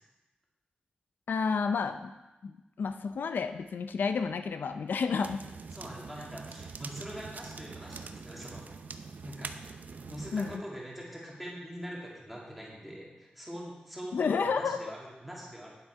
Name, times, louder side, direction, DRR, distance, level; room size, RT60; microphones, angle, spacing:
voice 1, 1.3-2.1 2.4-5.4 10.3-10.6 14.1-14.9, left 5 dB, 90° left, 9 dB, 0.4 m, -30 dB
sound 1, 5.2-10.6, right 5 dB, 60° right, 0.5 m, -44 dB
voice 2, 5.7-8.7 9.2-9.5 10.0-15.8, equal, ahead, -5 dB, 2.3 m, -43 dB
9.1 x 7.5 x 4.7 m, 1.1 s
wide cardioid pair, 140°, 3 cm